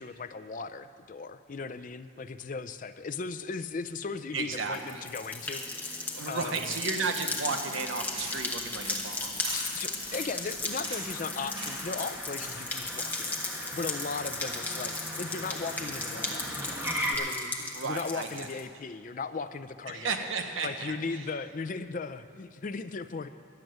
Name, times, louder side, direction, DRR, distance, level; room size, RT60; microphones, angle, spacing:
voice 1, 0.0-6.7 9.5-17.6 17.8-20.3 20.6-23.3, left 4 dB, 40° left, 12 dB, 0.4 m, -37 dB
Motor vehicle (road), 4.1-17.1, equal, 10° right, 1.3 m, -41 dB
voice 2, 4.3-5.1 6.1-9.7 17.6-18.6 19.9-21.3, right 4 dB, 80° right, 5 dB, 0.9 m, -34 dB
sound 1, 4.4-18.6, left 2 dB, 10° left, 1.0 m, -36 dB
sound 2, 7.8-12.9, right 1 dB, 25° right, 2.6 m, -42 dB
12.0 x 7.6 x 9.2 m, 2.2 s
head